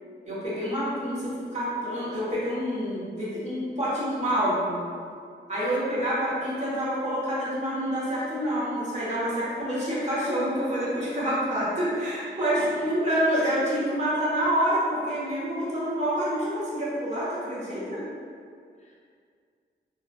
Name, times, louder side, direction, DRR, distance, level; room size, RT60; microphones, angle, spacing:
voice 1, 0.2-4.8 5.5-18.0, equal, 40° right, -9 dB, 1.1 m, -27 dB
voice 2, 5.7-6.1 12.8-12.9 17.6-18.0 18.8-19.0, left 2 dB, 40° left, -5 dB, 0.4 m, -45 dB
3.1 x 2.4 x 2.2 m, 2.2 s
wide cardioid pair, 90°, 19 cm